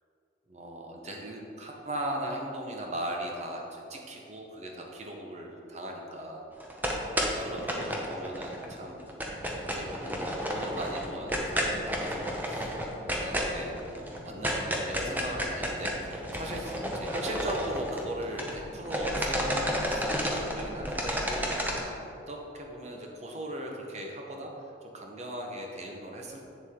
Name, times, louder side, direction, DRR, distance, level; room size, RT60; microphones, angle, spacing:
voice 1, 0.5-6.5 7.2-9.1 9.7-12.7 13.1-13.8 14.1-21.7 22.3-26.5, right 1 dB, 35° right, 0 dB, 1.0 m, -38 dB
sound 1, 6.6-8.7 9.0-18.6 18.8-21.8, equal, 10° right, 0.8 m, -31 dB
sound 2, 9.2-21.9, equal, 5° left, 1.1 m, -47 dB
8.4 x 7.2 x 3.7 m, 2.8 s
head